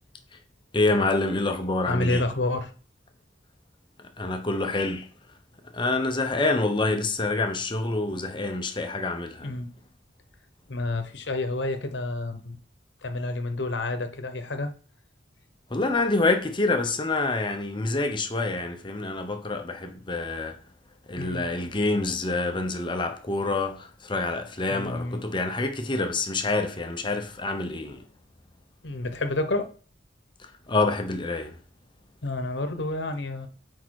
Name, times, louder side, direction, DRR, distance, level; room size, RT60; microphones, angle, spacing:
voice 1, 0.7-2.2 4.2-5.1 5.7-9.5 15.7-20.6 21.1-28.0 30.4-31.6, left 2 dB, 25° left, 0.8 m, -27 dB
voice 2, 1.9-2.7 9.4-9.7 10.7-12.6 13.0-14.7 21.2-21.5 24.7-25.2 28.8-29.7 32.2-33.5, left 2 dB, 70° left, 1.0 m, -29 dB
6.5 x 4.7 x 4.7 m
head